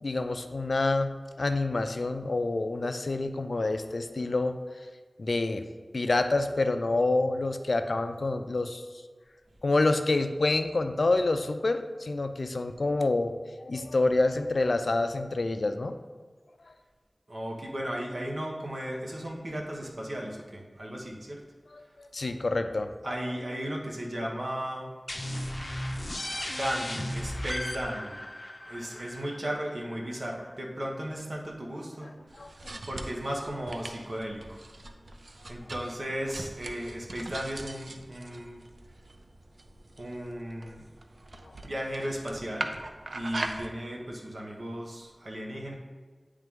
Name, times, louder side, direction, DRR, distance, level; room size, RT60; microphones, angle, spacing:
voice 1, 0.0-4.6 5.2-5.7 5.9-8.8 9.6-16.0 21.7-22.9 32.4-32.8 41.4-41.6, left 2 dB, 80° left, 8 dB, 0.4 m, -27 dB
voice 2, 17.3-21.4 23.0-24.9 26.5-28.2 28.7-32.1 32.9-34.6 35.5-38.6 40.0-40.8 41.6-42.8 43.1-45.8, equal, 65° right, -1 dB, 1.0 m, -35 dB
sound 1, 25.1-30.5, left 1 dB, 35° left, 0.6 m, -36 dB
sound 2, 32.3-43.7, right 2 dB, 85° right, 0.4 m, -41 dB
8.9 x 3.3 x 3.6 m, 1.5 s
wide cardioid pair, 55°, 0 cm